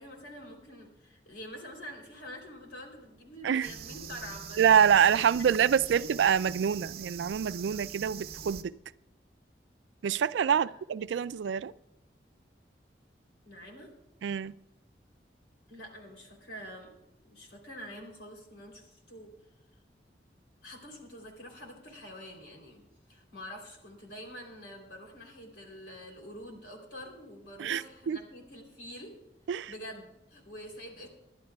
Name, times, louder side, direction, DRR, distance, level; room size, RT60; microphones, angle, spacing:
voice 1, 0.0-4.8 5.2-6.0 10.5-10.6 13.4-13.9 15.7-16.9 17.2-19.3 20.6-22.8 23.1-29.1 29.7-31.1, equal, 90° left, 3.2 m, -46 dB
sound 1, 3.6-8.6, right 7 dB, 55° right, 0.7 m, -43 dB
voice 2, 4.6-8.7 10.0-11.7 14.2-14.5 27.6-28.2 29.5-29.7, right 8 dB, 85° right, 0.3 m, -26 dB
26.5 x 11.0 x 2.3 m
head